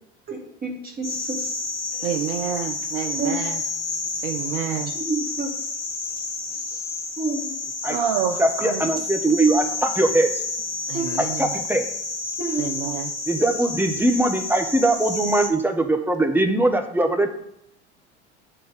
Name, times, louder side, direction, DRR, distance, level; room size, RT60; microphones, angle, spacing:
voice 1, 0.3-1.6 1.9-2.1 3.2-3.3 5.0-5.5 6.7-6.8 7.2-7.5 10.9-11.3 12.4-12.6, right 3 dB, 25° right, 1 dB, 2.1 m, -29 dB
sound 1, 1.0-15.5, left 3 dB, 85° left, 1.1 m, -30 dB
voice 2, 2.0-3.6 4.2-4.9 7.9-8.8 10.9-11.5 12.6-13.1, right 9 dB, 55° right, 7 dB, 0.7 m, -28 dB
voice 3, 8.4-10.3 11.2-11.8 13.3-17.3, right 2 dB, 5° right, 4 dB, 1.0 m, -21 dB
7.7 x 4.0 x 6.6 m, 0.76 s
figure-of-eight pair, 75°, 35 cm